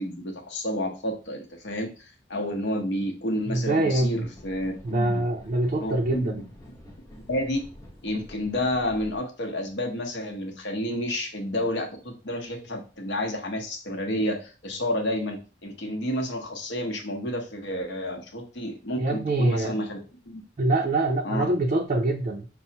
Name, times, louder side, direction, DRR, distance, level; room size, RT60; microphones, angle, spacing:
voice 1, 0.0-5.2 5.8-6.3 7.1-7.6 8.0-20.0 20.2-20.4 21.2-21.5, left 1 dB, 65° left, 3 dB, 0.8 m, -30 dB
voice 2, 3.5-4.3 4.8-6.4 19.0-19.8 20.6-22.5, right 2 dB, 40° right, 1 dB, 0.4 m, -24 dB
sound 1, 3.9-9.2, equal, 15° left, 0.8 m, -48 dB
5.3 x 2.0 x 2.7 m, 0.35 s
head